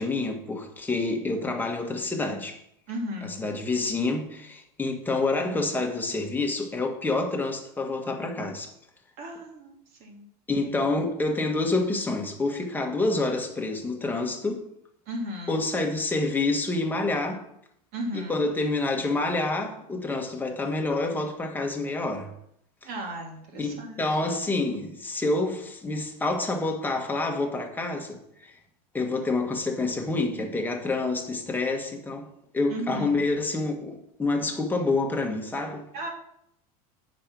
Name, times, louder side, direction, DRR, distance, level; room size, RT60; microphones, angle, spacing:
voice 1, 0.0-2.6 3.2-8.7 10.5-14.6 15.5-17.4 18.1-22.3 23.6-28.6 28.9-32.3 32.5-35.9, left 2 dB, 10° left, 1.3 m, -28 dB
voice 2, 2.9-3.4 9.2-10.3 15.1-15.6 17.9-18.4 22.8-24.1 32.7-33.2 35.9-36.1, equal, 50° right, 2.6 m, -35 dB
8.5 x 5.2 x 6.0 m
supercardioid pair, 135°, 19 cm